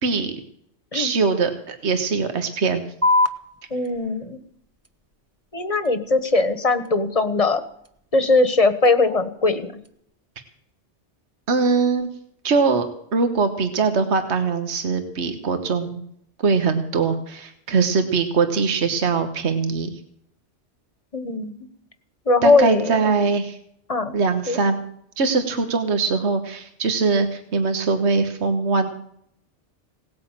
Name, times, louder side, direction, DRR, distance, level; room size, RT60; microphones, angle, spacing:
voice 1, 0.0-0.3 0.9-2.8 11.5-12.1 12.4-12.9 13.1-16.0 16.4-20.0 22.4-23.6 24.1-24.8 25.2-28.9, right 4 dB, 70° right, 7 dB, 1.6 m, -22 dB
sound 1, 3.0-10.0, left 2 dB, 15° right, 1.0 m, -30 dB
voice 2, 3.7-4.4 5.5-7.6 8.1-9.7 21.1-21.5 22.3-23.0 23.9-24.1 24.5-24.6, left 3 dB, 30° left, 10 dB, 1.3 m, -20 dB
18.0 x 9.5 x 7.5 m, 0.68 s
omnidirectional pair, 1.2 m